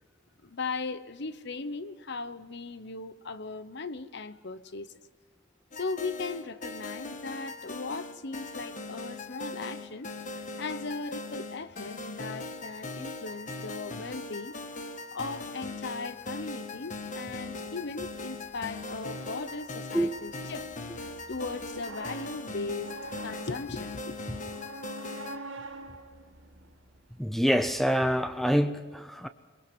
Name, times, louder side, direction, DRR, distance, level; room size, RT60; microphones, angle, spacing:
voice 1, 0.4-4.9 5.7-14.5 15.1-23.0 23.2-24.2, left 3 dB, 60° left, 0.9 m, -38 dB
sound 1, 5.7-25.4, left 3 dB, 40° left, 1.4 m, -40 dB
sound 2, 17.3-27.3, right 2 dB, 90° right, 5.3 m, -47 dB
voice 2, 27.2-29.3, equal, ahead, 0.7 m, -26 dB
22.5 x 22.5 x 6.3 m
head